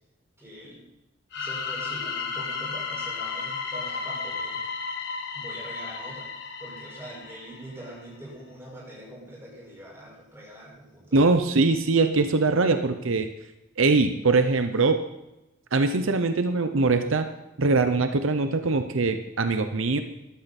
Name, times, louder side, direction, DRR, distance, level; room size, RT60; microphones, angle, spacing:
voice 1, 0.4-0.8 1.3-4.6 5.3-6.3 6.6-11.5, right 1 dB, 15° right, -4 dB, 5.4 m, -43 dB
sound 1, 1.3-8.0, left 5 dB, 55° left, 1.4 m, -33 dB
voice 2, 11.1-13.3 13.8-15.0 15.7-17.3 17.6-20.0, right 3 dB, 75° right, 8 dB, 0.8 m, -22 dB
14.0 x 12.5 x 4.2 m, 0.96 s
head